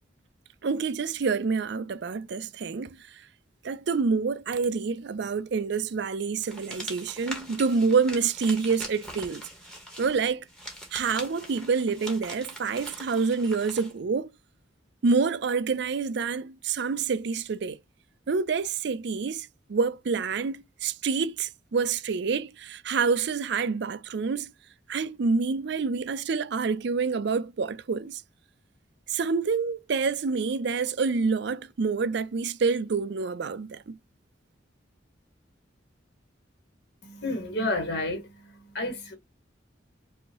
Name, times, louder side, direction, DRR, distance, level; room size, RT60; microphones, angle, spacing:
voice 1, 0.6-3.0 3.6-9.4 10.0-10.4 10.9-14.3 15.0-17.8 18.3-24.5 24.9-28.2 29.1-34.0, right 5 dB, 60° right, 0.4 m, -27 dB
sound 1, 6.4-13.9, equal, 5° left, 1.6 m, -42 dB
voice 2, 37.0-38.3 38.7-39.1, left 1 dB, 60° left, 1.6 m, -30 dB
5.6 x 2.7 x 2.9 m
head